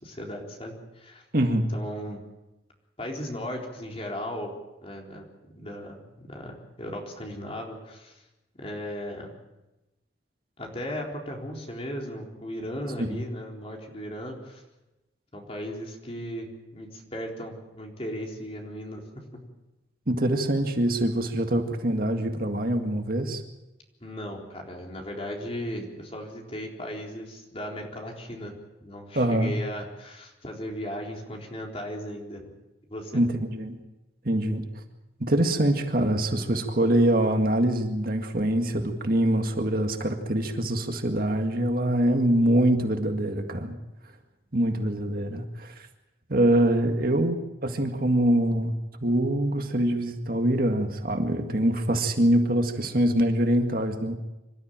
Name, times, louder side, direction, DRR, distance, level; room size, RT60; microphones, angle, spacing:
voice 1, 0.0-1.2 1.7-2.2 3.0-4.5 4.8-8.2 8.6-9.4 10.6-14.6 15.3-19.3 24.0-32.5 32.9-33.2, equal, 35° left, 0 dB, 4.0 m, -37 dB
voice 2, 1.3-1.7 13.0-13.2 20.1-23.4 29.2-29.6 33.1-33.8 34.2-34.6 35.2-43.7 44.5-45.7 46.3-48.7 49.0-54.1, right 1 dB, 55° right, 5 dB, 2.0 m, -24 dB
26.0 x 13.5 x 9.0 m, 1.0 s
head